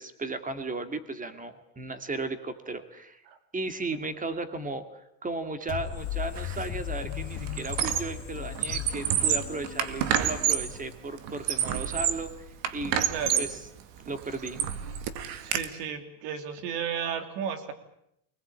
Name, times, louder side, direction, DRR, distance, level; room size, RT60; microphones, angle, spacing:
voice 1, 0.0-3.2 3.5-12.5 12.7-13.0 13.4-13.6 14.1-14.6, right 3 dB, 15° right, 9 dB, 2.2 m, -35 dB
sound 1, 5.7-11.3, left 13 dB, 75° left, 2.7 m, -37 dB
Squeak, 6.4-6.7 7.0-8.2 8.5-10.8 11.3-12.3 12.6-13.6 14.1-15.6, right 9 dB, 60° right, 2.2 m, -28 dB
voice 2, 13.1-13.5 15.4-17.7, right 7 dB, 75° right, 8 dB, 3.3 m, -33 dB
25.0 x 19.5 x 8.8 m, 0.76 s
cardioid pair, 135°, 49 cm